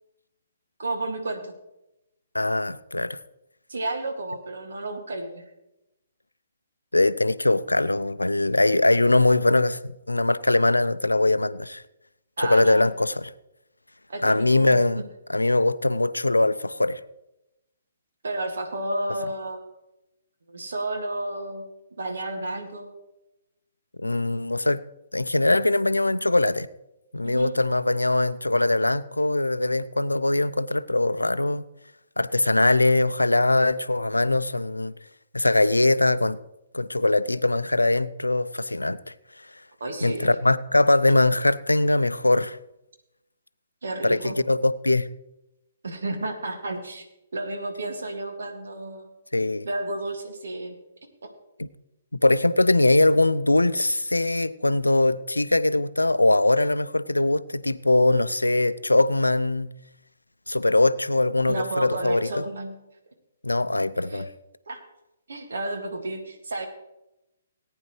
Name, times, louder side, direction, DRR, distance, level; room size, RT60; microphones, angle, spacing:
voice 1, 0.8-1.5 3.7-5.4 12.4-12.9 14.1-15.0 18.2-19.7 20.5-21.6 22.0-23.0 27.2-27.6 39.8-40.3 43.8-44.4 45.8-47.1 47.3-49.1 49.6-50.8 51.2-51.3 61.5-62.8 64.1-64.3 64.7-64.8 65.3-66.7, right 2 dB, 65° right, 4 dB, 2.1 m, -31 dB
voice 2, 2.3-3.2 6.9-11.8 12.4-13.3 14.2-15.0 15.3-17.0 24.0-24.8 25.1-26.7 27.1-31.6 32.2-34.9 35.3-36.4 36.7-39.0 40.0-42.6 44.0-45.1 49.3-49.7 51.6-51.7 52.2-59.7 60.5-62.3 63.4-64.3, left 2 dB, 80° left, 15 dB, 0.5 m, -21 dB
18.5 x 9.6 x 3.2 m, 0.89 s
figure-of-eight pair, 130°, 0 cm